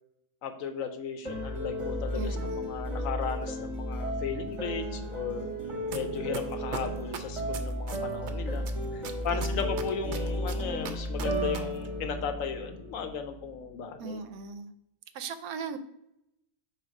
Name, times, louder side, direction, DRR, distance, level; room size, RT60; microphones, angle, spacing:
voice 1, 0.4-5.5 5.9-8.6 8.9-14.2, left 6 dB, 70° left, 7 dB, 1.0 m, -36 dB
sound 1, 1.2-13.4, equal, 25° right, 0.9 m, -33 dB
voice 2, 2.1-2.7 9.3-9.7 14.0-14.7 15.1-15.8, right 6 dB, 80° right, 10 dB, 1.0 m, -39 dB
sound 2, 5.9-6.0 6.3-8.3 8.7-11.6 11.8-11.9, right 7 dB, 60° right, 0.8 m, -38 dB
4.4 x 4.1 x 5.1 m, 0.81 s
omnidirectional pair, 1.6 m